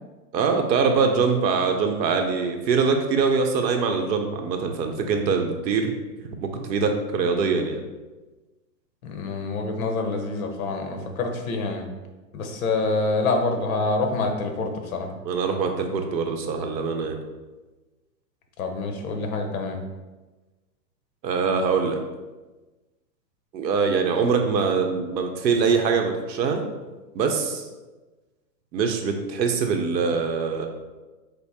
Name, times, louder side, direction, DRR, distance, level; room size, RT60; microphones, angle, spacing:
voice 1, 0.3-5.9 6.4-7.8 15.2-17.2 21.2-22.0 23.5-26.6 27.1-27.6 28.7-30.7, right 5 dB, 85° right, 4 dB, 0.9 m, -23 dB
voice 2, 9.0-11.8 12.3-15.1 18.6-19.8, left 3 dB, 55° left, 4 dB, 0.9 m, -26 dB
5.2 x 2.0 x 4.1 m, 1.2 s
hypercardioid pair, 165°, 50 cm